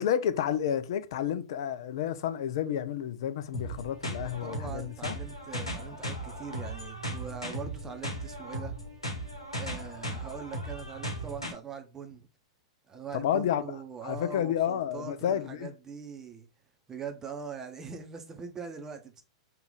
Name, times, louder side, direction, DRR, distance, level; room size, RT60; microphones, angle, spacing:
voice 1, 0.0-5.2 13.1-13.7 14.0-15.7, left 9 dB, 55° left, 0.4 m, -30 dB
sound 1, 3.5-11.5, equal, 90° left, 1.0 m, -37 dB
voice 2, 4.4-8.7 9.6-12.3 12.9-16.5 16.9-19.2, right 6 dB, 15° right, 0.7 m, -42 dB
3.8 x 2.4 x 3.7 m
figure-of-eight pair, 100°, 3 cm